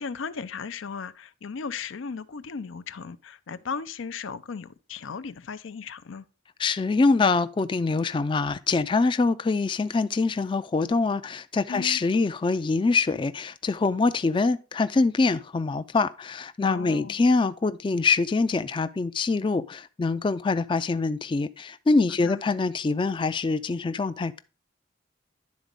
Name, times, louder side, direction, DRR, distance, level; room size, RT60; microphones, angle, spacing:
voice 1, 0.0-6.3 11.7-12.0 16.7-17.2 22.2-22.4, left 5 dB, 85° left, 0.5 m, -36 dB
voice 2, 6.6-24.4, left 3 dB, 25° left, 0.3 m, -24 dB
10.5 x 4.0 x 5.2 m
head